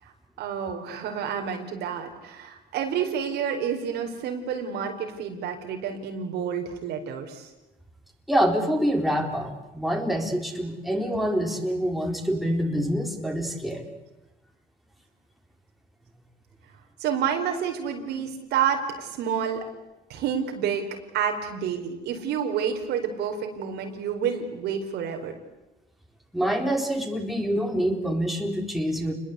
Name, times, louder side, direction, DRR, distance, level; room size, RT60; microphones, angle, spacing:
voice 1, 0.4-7.5 17.0-19.6 20.1-20.9 21.1-25.3, right 7 dB, 80° right, 4 dB, 4.5 m, -29 dB
voice 2, 8.3-13.9 26.3-29.1, equal, ahead, 2 dB, 3.9 m, -26 dB
29.0 x 21.5 x 8.3 m, 1.0 s
cardioid pair, 110°, 17 cm